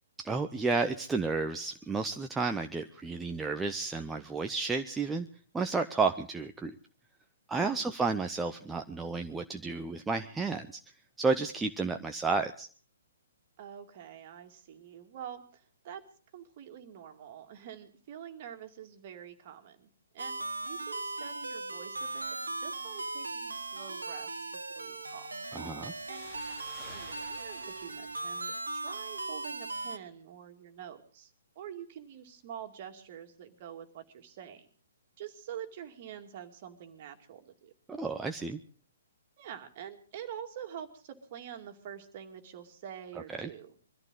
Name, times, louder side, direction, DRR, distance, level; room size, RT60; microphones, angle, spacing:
voice 1, 0.2-5.3 5.5-6.8 7.5-10.8 11.2-12.7 25.5-25.9 37.9-38.6 43.3-43.5, right 4 dB, 10° right, 5 dB, 0.7 m, -32 dB
voice 2, 7.6-7.9 13.6-16.1 16.3-24.3 24.8-25.3 26.1-26.3 26.9-34.7 35.2-37.7 39.4-43.7, right 9 dB, 40° right, 6 dB, 2.4 m, -46 dB
sound 1, 20.2-30.0, right 2 dB, 75° right, 1.3 m, -38 dB
sound 2, 26.0-29.4, left 3 dB, 25° left, 3.7 m, -53 dB
23.5 x 14.0 x 4.0 m, 0.41 s
figure-of-eight pair, 125°, 0 cm